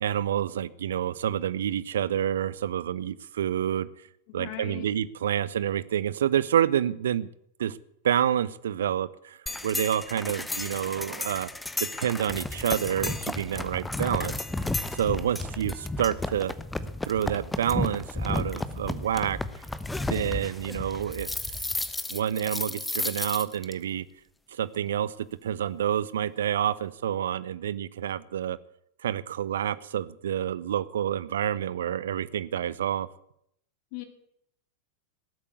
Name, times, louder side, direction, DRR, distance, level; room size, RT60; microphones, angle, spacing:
voice 1, 0.0-3.9 4.3-7.3 7.6-7.8 8.0-9.4 9.6-11.5 11.9-14.4 14.9-16.5 17.0-19.4 20.1-21.3 22.1-24.0 24.6-25.1 25.4-28.6 29.0-33.1, right 10 dB, 60° right, 18 dB, 0.6 m, -28 dB
voice 2, 4.3-4.9 33.9-34.0, left 14 dB, 45° left, 8 dB, 2.3 m, -38 dB
sound 1, 9.5-23.7, left 2 dB, 5° left, 1.0 m, -33 dB
18.5 x 8.5 x 8.2 m, 0.73 s
figure-of-eight pair, 90°, 0 cm